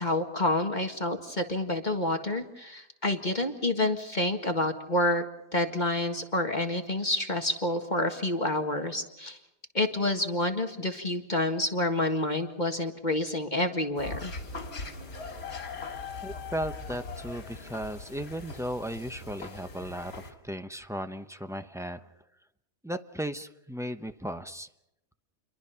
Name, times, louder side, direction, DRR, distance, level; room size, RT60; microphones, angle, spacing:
voice 1, 0.0-5.2 5.5-9.4 9.7-14.3, left 1 dB, 30° left, 5 dB, 1.8 m, -28 dB
sound 1, 14.0-20.3, left 3 dB, 60° left, 3.4 m, -40 dB
voice 2, 16.2-22.1 22.8-24.7, equal, 5° right, 9 dB, 0.3 m, -36 dB
29.0 x 23.0 x 5.7 m, 0.86 s
omnidirectional pair, 1.7 m